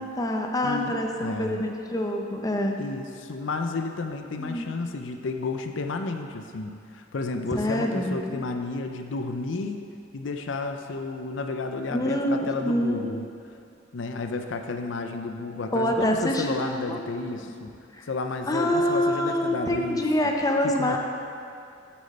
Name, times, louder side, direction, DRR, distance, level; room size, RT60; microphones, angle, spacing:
voice 1, 0.0-2.8 4.4-4.7 7.5-8.4 11.9-13.1 15.7-17.0 17.4-17.5 17.9-18.1 18.5-21.0, left 1 dB, 20° left, 2 dB, 0.6 m, -26 dB
voice 2, 0.6-1.6 2.8-9.8 10.1-13.3 13.9-17.7 18.0-20.0 20.8-21.0, left 3 dB, 70° left, 5 dB, 0.5 m, -32 dB
8.5 x 7.7 x 4.2 m, 2.6 s
head